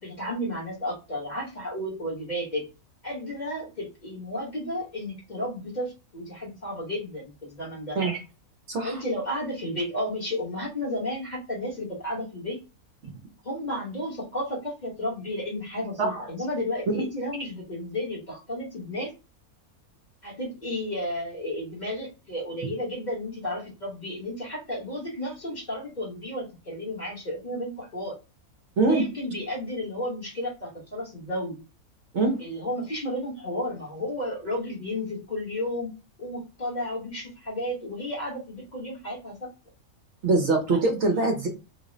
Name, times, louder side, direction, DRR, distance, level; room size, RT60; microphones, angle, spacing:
voice 1, 0.0-2.6 3.0-8.0 8.8-12.6 13.4-19.1 20.2-28.2 28.8-31.6 32.4-35.9 36.2-39.5 40.7-40.8, left 1 dB, 35° left, -4 dB, 1.1 m, -32 dB
voice 2, 8.7-9.0 16.0-16.2 28.8-29.0 32.1-32.4 40.2-41.5, right 3 dB, 60° right, 2 dB, 0.9 m, -23 dB
3.1 x 2.1 x 3.8 m, 0.30 s
omnidirectional pair, 1.5 m